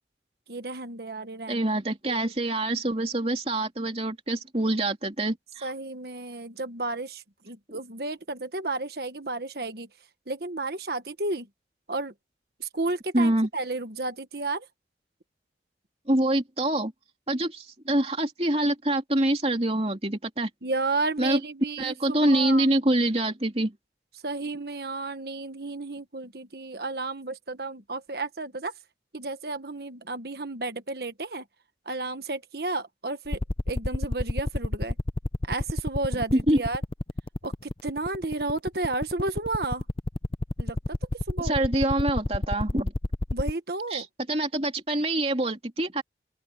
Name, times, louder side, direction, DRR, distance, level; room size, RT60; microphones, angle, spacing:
voice 1, 0.5-1.7 2.1-2.3 5.6-9.9 10.3-11.5 11.9-12.1 12.6-14.7 20.6-22.7 24.2-28.8 29.1-31.5 31.8-33.4 33.7-35.0 35.4-36.8 37.4-39.8 40.6-41.6 43.3-44.1, right 2 dB, 55° right, 1.4 m, -32 dB
voice 2, 1.5-5.7 13.1-13.5 16.1-16.9 17.3-20.5 21.2-21.4 21.8-23.7 36.5-36.6 41.4-42.9 43.9-46.0, right 1 dB, 35° right, 3.2 m, -25 dB
sound 1, 33.3-43.5, left 2 dB, 30° left, 0.6 m, -27 dB
open air
head